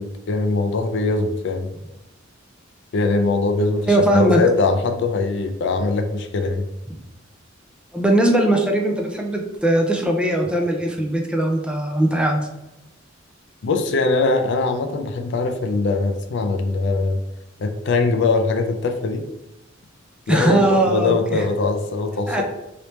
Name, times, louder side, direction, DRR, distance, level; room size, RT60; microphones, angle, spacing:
voice 1, 0.0-1.7 2.9-6.6 13.6-17.2 17.6-19.3 20.3-22.4, left 3 dB, 60° left, 6 dB, 0.4 m, -21 dB
voice 2, 3.9-4.4 7.9-12.5 20.3-21.4 22.3-22.4, right 1 dB, 5° right, 1 dB, 0.4 m, -19 dB
3.3 x 2.8 x 3.0 m, 0.95 s
head